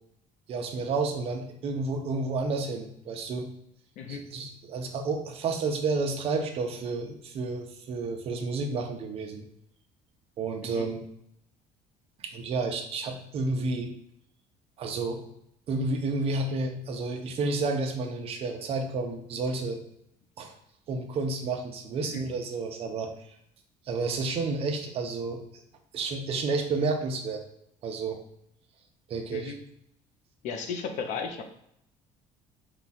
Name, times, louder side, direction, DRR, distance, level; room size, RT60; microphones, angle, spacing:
voice 1, 0.5-3.5 4.1-9.5 10.4-11.0 12.2-13.9 14.8-15.2 15.7-19.8 20.4-20.5 20.9-23.1 23.9-25.4 25.9-27.4 27.8-28.2 29.1-29.5, right 3 dB, 45° right, 4 dB, 0.7 m, -30 dB
voice 2, 4.0-4.3 10.6-10.9 22.1-22.2 29.3-29.6 30.4-31.4, left 6 dB, 60° left, 5 dB, 0.6 m, -35 dB
4.7 x 2.3 x 4.1 m, 0.74 s
cardioid pair, 150°, 14 cm